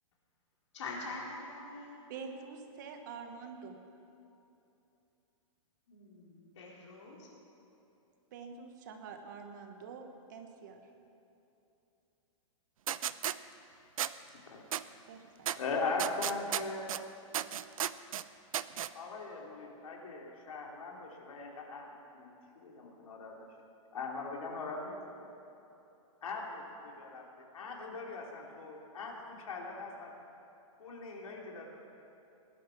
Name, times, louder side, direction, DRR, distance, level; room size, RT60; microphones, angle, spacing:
voice 1, 0.7-2.0 5.9-7.3, left 3 dB, 60° left, -4 dB, 4.5 m, -44 dB
voice 2, 2.1-3.8 8.3-10.9 15.1-15.5, right 5 dB, 35° right, 5 dB, 1.1 m, -46 dB
sound 1, 12.9-13.4 14.0-14.1 14.7-14.8 15.5-15.6 16.0-17.0 17.3-18.2 18.5-18.9, right 10 dB, 85° right, 0.6 m, -33 dB
voice 3, 15.6-16.9 18.9-23.3 23.9-25.3 26.2-27.2 27.5-30.1 30.8-31.6, left 3 dB, 85° left, -1 dB, 3.2 m, -40 dB
19.5 x 11.5 x 6.0 m, 2.9 s
hypercardioid pair, 175°, 17 cm